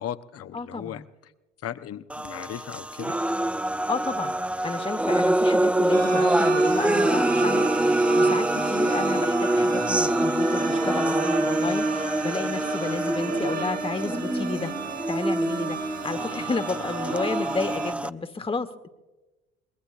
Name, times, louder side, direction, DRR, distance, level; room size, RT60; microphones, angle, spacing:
voice 1, 0.0-1.3 1.6-3.2, left 10 dB, 50° left, 12 dB, 0.9 m, -37 dB
voice 2, 0.5-1.1 3.9-4.3 4.6-14.7 15.1-18.9, left 3 dB, 15° left, 8 dB, 1.2 m, -31 dB
sound 1, 2.1-18.1, right 1 dB, 5° right, 0.4 m, -25 dB
sound 2, 5.9-17.9, right 7 dB, 55° right, 2.0 m, -35 dB
Wind instrument woodwind instrument, 10.4-14.6, right 3 dB, 25° right, 1.0 m, -38 dB
23.5 x 21.5 x 2.5 m, 1.1 s
hypercardioid pair, 55°, 32 cm